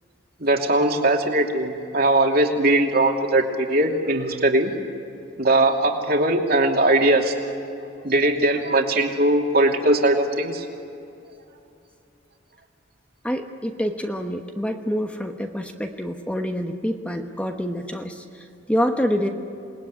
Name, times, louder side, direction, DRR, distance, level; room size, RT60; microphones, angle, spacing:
voice 1, 0.4-4.7 5.4-7.6 8.0-10.6, right 1 dB, 50° right, 2 dB, 2.8 m, -20 dB
voice 2, 13.2-19.3, equal, 5° left, 4 dB, 1.1 m, -27 dB
28.0 x 20.5 x 9.6 m, 2.7 s
head